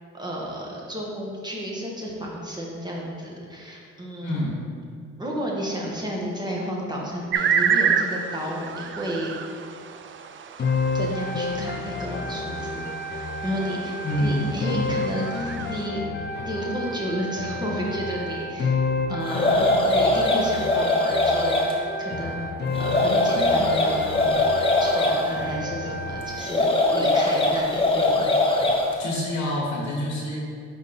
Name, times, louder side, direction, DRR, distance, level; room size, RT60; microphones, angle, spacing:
voice 1, 0.1-4.4 5.2-9.3 10.9-16.0 16.4-18.8 19.1-22.5 22.8-24.5 24.8-28.4 28.9-29.0, equal, 15° right, -3 dB, 1.4 m, -32 dB
voice 2, 4.2-4.6 14.0-14.5 29.0-30.4, left 1 dB, 70° left, -4 dB, 1.4 m, -26 dB
sound 1, 7.3-15.9, right 7 dB, 40° right, 0.4 m, -29 dB
sound 2, 10.6-26.6, left 3 dB, 35° left, 0.4 m, -30 dB
sound 3, 19.3-21.7 22.7-25.2 26.4-28.9, left 2 dB, 20° left, 0.9 m, -21 dB
5.2 x 5.2 x 4.1 m, 2.3 s
cardioid pair, 90°, 30 cm